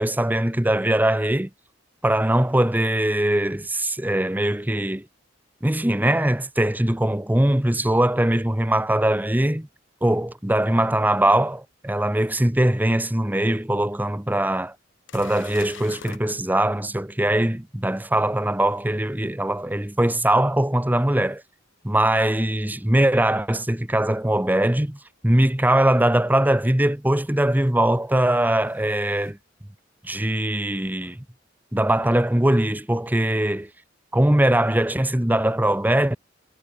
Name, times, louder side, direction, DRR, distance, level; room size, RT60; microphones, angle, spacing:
voice 1, 0.0-1.5 2.0-5.1 5.6-9.7 10.0-14.7 15.1-21.4 21.8-29.4 30.0-31.2 31.7-33.7 34.1-36.2, right 1 dB, 10° right, 1.0 m, -21 dB
sound 1, 13.9-14.0 14.5-14.6 15.1-16.2 21.4-21.5 24.2-24.3 26.0-26.1 27.5-29.3, left 6 dB, 90° left, 1.8 m, -45 dB
head